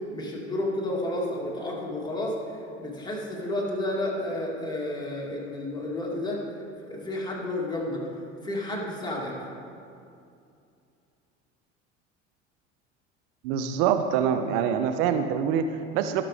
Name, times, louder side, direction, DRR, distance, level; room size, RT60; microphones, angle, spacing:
voice 1, 0.1-6.4 6.8-8.1 8.4-9.4, left 1 dB, 10° left, -4 dB, 2.8 m, -31 dB
voice 2, 13.4-16.2, right 8 dB, 55° right, 8 dB, 0.7 m, -25 dB
20.0 x 6.7 x 3.7 m, 2.5 s
figure-of-eight pair, 65°, 36 cm